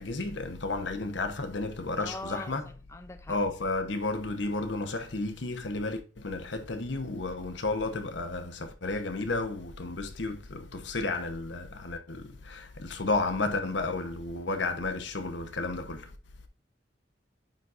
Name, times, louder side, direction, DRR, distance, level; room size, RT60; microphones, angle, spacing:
voice 1, 0.0-2.7 3.3-16.2, left 2 dB, 70° left, 1.0 m, -32 dB
voice 2, 2.0-2.6 2.9-3.4, left 2 dB, 15° left, 0.5 m, -41 dB
9.0 x 4.1 x 2.5 m
head